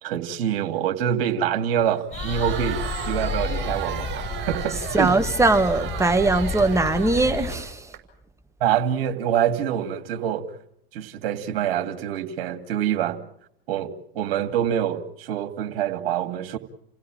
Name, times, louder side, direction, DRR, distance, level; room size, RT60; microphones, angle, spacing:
voice 1, 0.0-5.2 8.6-10.5 10.9-13.2 13.7-16.6, right 9 dB, 65° right, 2.5 m, -26 dB
Crowd, 2.0-8.0, right 9 dB, 35° right, 6.5 m, -35 dB
sound 1, 2.1-7.6, left 4 dB, 20° left, 6.2 m, -31 dB
voice 2, 4.9-7.9, right 2 dB, 10° right, 1.6 m, -21 dB
29.0 x 16.5 x 8.9 m
hypercardioid pair, 85°, 31 cm